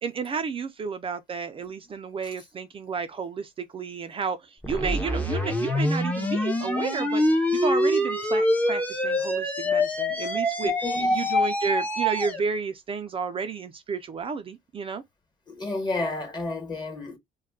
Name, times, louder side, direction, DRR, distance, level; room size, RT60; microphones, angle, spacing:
voice 1, 0.0-10.7 11.1-15.0, right 5 dB, 30° right, 0.4 m, -32 dB
sound 1, 4.6-12.4, left 1 dB, 10° left, 0.6 m, -25 dB
voice 2, 10.6-11.3 15.5-17.2, left 2 dB, 25° left, 1.2 m, -32 dB
2.4 x 2.2 x 3.4 m
cardioid pair, 110°, 17 cm